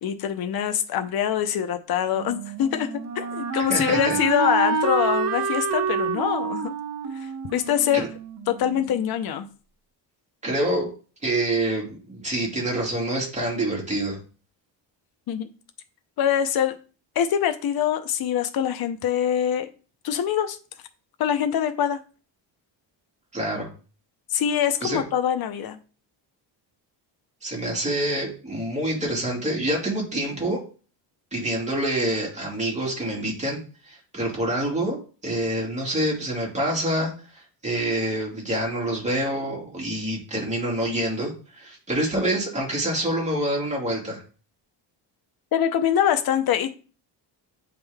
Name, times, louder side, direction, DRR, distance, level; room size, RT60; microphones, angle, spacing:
voice 1, 0.0-6.7 7.1-8.1 8.5-9.5 15.3-15.5 16.2-16.8 17.2-19.7 20.0-20.6 21.2-22.0 24.3-25.8 45.5-46.7, left 9 dB, 55° left, 0.7 m, -24 dB
Wind instrument woodwind instrument, 2.1-9.0, right 6 dB, 40° right, 0.7 m, -28 dB
voice 2, 3.7-4.2 7.9-8.1 10.4-10.9 11.2-14.2 23.3-23.7 24.8-25.0 27.4-30.6 31.3-33.6 33.9-44.2, right 1 dB, 15° right, 2.3 m, -26 dB
8.0 x 3.8 x 3.4 m
cardioid pair, 135°, 45 cm